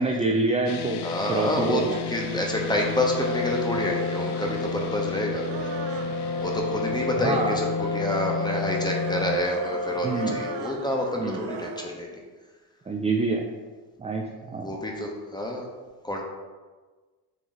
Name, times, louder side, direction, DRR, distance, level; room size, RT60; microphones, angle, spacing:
voice 1, 0.0-1.0 1.3-2.0 7.2-7.5 10.0-10.4 11.2-11.4 12.9-13.4 14.0-14.7, right 3 dB, 15° right, 1 dB, 0.3 m, -26 dB
sound 1, 0.7-9.4, left 7 dB, 60° left, 0.5 m, -33 dB
voice 2, 1.0-5.4 6.4-12.2 14.6-15.7 16.0-16.2, left 1 dB, 10° left, 0 dB, 0.9 m, -28 dB
sound 2, 2.0-12.0, right 7 dB, 70° right, 0.5 m, -43 dB
Brass instrument, 3.0-10.8, left 2 dB, 25° left, 1.5 m, -32 dB
4.0 x 3.0 x 3.8 m, 1.3 s
supercardioid pair, 65°, 46 cm